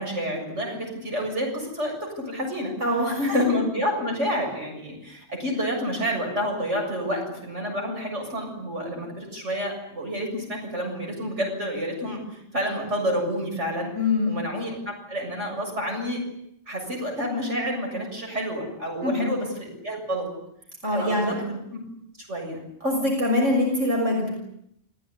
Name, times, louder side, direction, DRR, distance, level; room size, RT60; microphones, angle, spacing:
voice 1, 0.0-2.8 3.2-13.9 14.2-16.2 16.7-20.3 20.9-21.8 22.3-22.6, equal, 70° right, 1 dB, 7.7 m, -29 dB
voice 2, 2.8-3.4 13.9-14.4 19.0-19.3 20.8-21.4 22.8-24.3, left 1 dB, 90° right, 0 dB, 6.6 m, -24 dB
28.5 x 18.0 x 9.7 m, 0.77 s
omnidirectional pair, 1.2 m